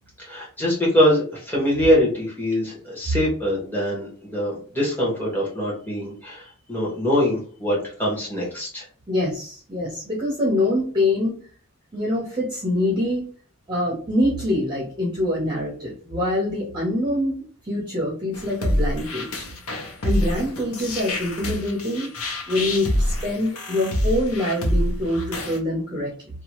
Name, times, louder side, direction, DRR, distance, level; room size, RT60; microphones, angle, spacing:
voice 1, 0.2-8.8, equal, 10° left, -6 dB, 1.2 m, -23 dB
voice 2, 9.1-11.4 11.9-13.3 13.7-17.4 17.6-19.5 20.0-22.1 22.5-26.1, left 1 dB, 20° right, -4 dB, 0.8 m, -24 dB
sound 1, 18.3-25.6, left 1 dB, 80° left, 0.7 m, -26 dB
2.8 x 2.3 x 3.0 m, 0.43 s
head